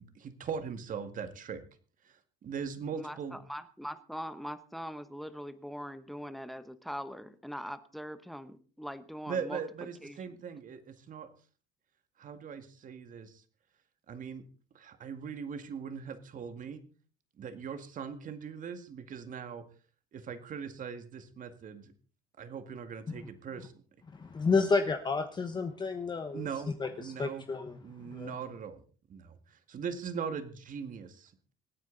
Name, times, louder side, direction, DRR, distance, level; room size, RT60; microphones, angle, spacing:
voice 1, 0.0-1.6 2.0-3.4 9.3-11.3 12.2-13.4 14.1-14.4 14.7-16.8 17.4-19.6 20.1-21.9 22.4-23.8 26.3-26.7 27.0-27.5 27.8-28.8 29.1-31.5, right 6 dB, 40° right, 9 dB, 2.0 m, -40 dB
voice 2, 2.9-9.6 10.0-10.2, equal, ahead, 12 dB, 1.0 m, -42 dB
voice 3, 24.1-26.5 26.8-27.8 28.1-28.4, left 4 dB, 20° left, 6 dB, 1.1 m, -31 dB
25.5 x 9.4 x 4.0 m, 0.39 s
cardioid pair, 145°, 21 cm